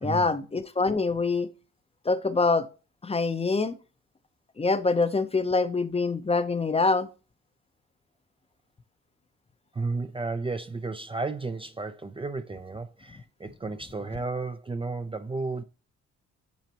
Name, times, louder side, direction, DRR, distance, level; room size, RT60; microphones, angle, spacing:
voice 1, 0.0-1.5 2.0-2.7 3.0-3.8 4.6-7.1, left 3 dB, 20° left, 0.7 m, -25 dB
voice 2, 9.7-15.6, right 3 dB, 20° right, 0.5 m, -33 dB
9.2 x 4.1 x 2.9 m
cardioid pair, 90°, 30 cm